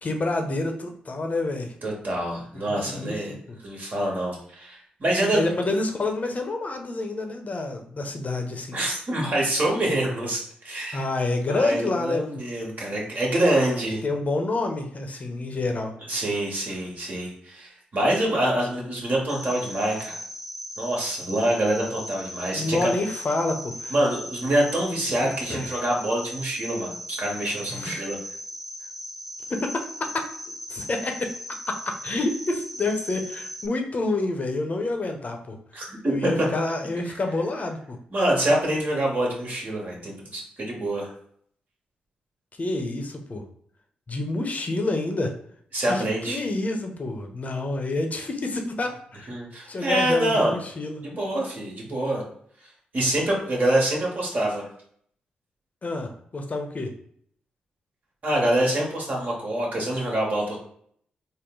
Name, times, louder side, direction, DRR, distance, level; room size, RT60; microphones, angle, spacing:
voice 1, 0.0-1.7 2.5-3.2 3.5-3.6 5.3-8.8 10.9-12.2 14.0-15.9 22.5-23.9 25.2-25.8 27.7-28.1 29.5-29.8 30.1-30.3 30.7-31.3 31.7-35.6 36.0-38.0 42.6-43.4 44.1-45.3 45.9-49.3 49.7-51.0 55.8-56.9, left 2 dB, 45° left, 4 dB, 0.7 m, -28 dB
voice 2, 1.8-5.4 8.7-14.0 16.1-20.2 20.8-22.9 23.9-28.2 35.7-36.5 38.1-41.1 45.7-46.4 49.3-50.6 51.0-52.2 52.9-54.7 58.2-60.6, right 1 dB, 50° right, -2 dB, 1.4 m, -26 dB
Cricket, 19.3-33.7, equal, 5° right, 0.4 m, -38 dB
3.8 x 2.1 x 3.8 m, 0.64 s
supercardioid pair, 45°, 4 cm